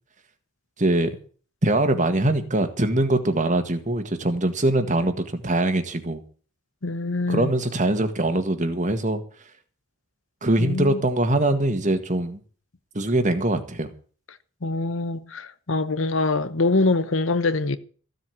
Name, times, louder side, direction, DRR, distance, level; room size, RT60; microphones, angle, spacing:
voice 1, 0.8-1.1 1.6-6.2 7.3-9.2 10.4-12.4 12.9-13.9, right 1 dB, 35° right, 1.8 m, -22 dB
voice 2, 6.8-7.5 10.6-11.0 14.6-17.8, left 3 dB, 60° left, 1.0 m, -24 dB
15.0 x 7.9 x 8.6 m
head